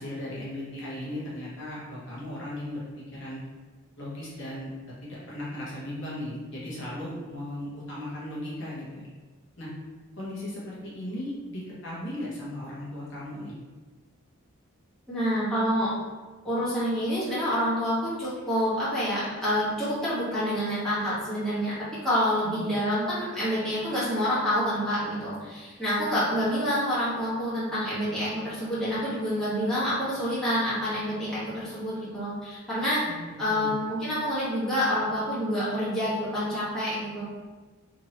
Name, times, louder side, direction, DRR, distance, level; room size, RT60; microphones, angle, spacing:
voice 1, 0.0-2.9 3.1-3.4 4.0-4.7 5.0-9.1 9.6-9.7 10.2-13.5 22.4-22.8 33.1-33.8, left 1 dB, 60° left, -7 dB, 0.9 m, -37 dB
voice 2, 15.1-15.9 16.4-21.7 22.0-33.0 33.4-37.2, equal, ahead, -13 dB, 1.2 m, -27 dB
2.9 x 2.7 x 2.8 m, 1.3 s
head